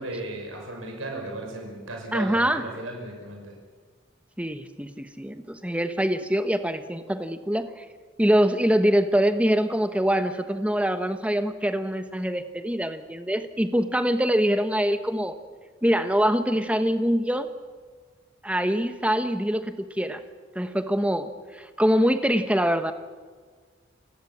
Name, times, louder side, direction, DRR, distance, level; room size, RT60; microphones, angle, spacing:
voice 1, 0.0-3.6, right 2 dB, 90° right, 1 dB, 5.9 m, -35 dB
voice 2, 2.1-2.6 4.4-7.8 8.2-15.4 15.8-17.5 18.4-20.2 20.5-22.9, equal, 5° right, 9 dB, 1.2 m, -24 dB
29.5 x 17.0 x 7.4 m, 1.5 s
head